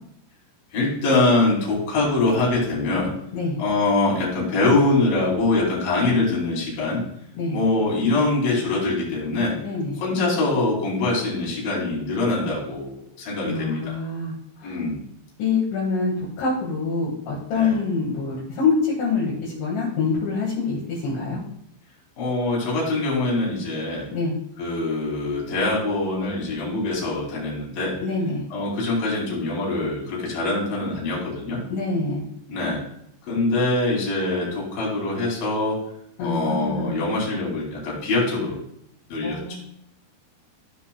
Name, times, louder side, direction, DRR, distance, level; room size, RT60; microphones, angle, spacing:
voice 1, 0.7-3.1 3.6-7.0 7.5-9.6 10.0-14.0 14.6-15.0 17.5-17.8 22.2-24.1 24.6-28.0 28.5-31.6 32.5-32.8 33.3-35.8 36.2-38.6 39.1-39.6, left 2 dB, 50° left, -4 dB, 4.4 m, -23 dB
voice 2, 9.6-10.0 13.4-14.4 14.6-14.7 15.4-21.4 24.1-24.4 28.0-28.4 31.7-32.3 36.2-37.0 39.2-39.6, left 4 dB, 70° left, -6 dB, 4.1 m, -25 dB
14.5 x 7.5 x 2.4 m, 0.72 s
omnidirectional pair, 5.7 m